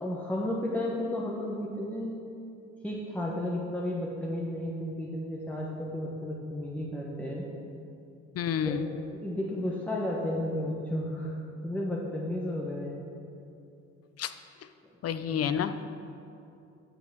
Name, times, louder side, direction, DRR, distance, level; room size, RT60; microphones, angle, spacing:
voice 1, 0.0-2.2 2.8-7.5 8.6-8.7 9.2-11.4 11.6-13.0 15.3-15.4, left 1 dB, 5° left, -3 dB, 1.0 m, -33 dB
voice 2, 8.3-8.9 14.2-14.3 15.0-15.8, left 8 dB, 55° left, 11 dB, 0.5 m, -29 dB
6.7 x 6.0 x 7.2 m, 2.6 s
cardioid pair, 90°, 30 cm